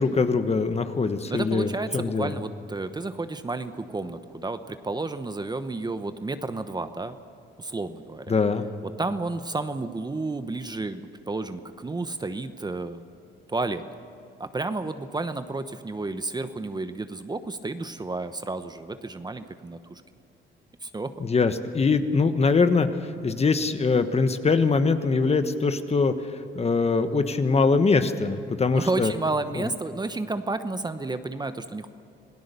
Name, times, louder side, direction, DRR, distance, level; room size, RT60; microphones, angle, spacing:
voice 1, 0.0-2.4 8.3-8.7 21.2-26.1 26.5-29.1 29.5-29.6, left 4 dB, 30° left, 9 dB, 1.3 m, -23 dB
voice 2, 1.3-7.2 7.6-8.4 8.8-13.0 13.5-13.8 14.4-20.0 20.8-21.1 28.7-32.0, right 3 dB, 20° right, 10 dB, 1.0 m, -31 dB
26.5 x 17.5 x 6.9 m, 2.5 s
cardioid pair, 90°, 20 cm